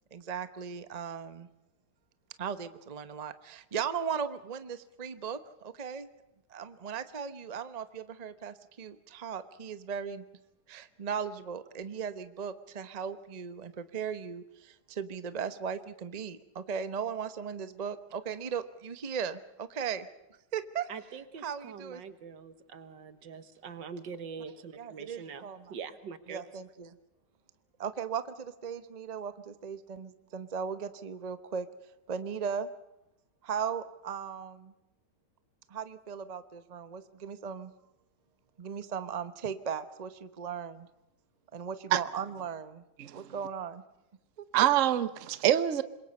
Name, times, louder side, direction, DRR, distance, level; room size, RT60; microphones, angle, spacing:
voice 1, 0.1-1.5 2.4-6.1 6.5-10.2 10.7-20.1 20.5-20.9 21.4-22.0 24.8-25.7 26.3-27.0 27.8-31.7 32.1-32.7 33.4-34.7 35.7-37.7 38.6-40.9 41.5-42.8 43.1-43.8, right 7 dB, 30° right, 0.8 m, -37 dB
voice 2, 20.9-26.4, right 6 dB, 80° right, 2.0 m, -44 dB
voice 3, 43.0-43.3 44.5-45.8, right 11 dB, 50° right, 1.1 m, -25 dB
26.5 x 22.5 x 5.5 m
omnidirectional pair, 1.9 m